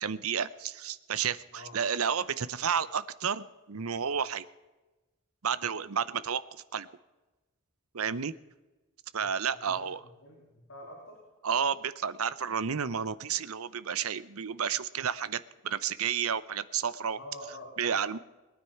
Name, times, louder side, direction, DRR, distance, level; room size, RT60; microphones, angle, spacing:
voice 1, 0.0-4.4 5.4-6.9 7.9-8.3 9.1-10.0 11.4-17.2 17.8-18.2, right 7 dB, 85° right, 17 dB, 0.7 m, -31 dB
voice 2, 10.2-11.2 17.2-18.0, left 1 dB, 70° left, -3 dB, 3.9 m, -46 dB
21.5 x 9.7 x 5.8 m, 1.1 s
head